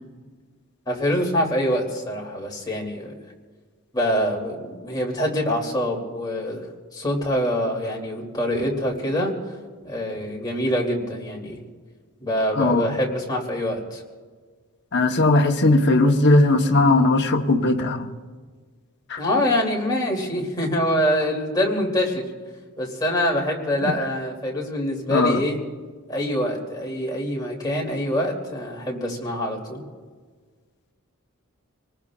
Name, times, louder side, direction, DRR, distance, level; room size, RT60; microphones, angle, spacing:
voice 1, 0.9-3.1 3.9-6.6 6.9-9.3 9.8-11.6 12.2-14.0 19.2-22.3 22.8-25.6 26.1-29.8, equal, 20° left, -2 dB, 2.8 m, -25 dB
voice 2, 12.5-13.0 14.9-18.1 19.1-19.2 23.8-23.9 25.1-25.4, left 2 dB, 50° left, 4 dB, 1.1 m, -18 dB
27.0 x 19.5 x 2.4 m, 1.5 s
head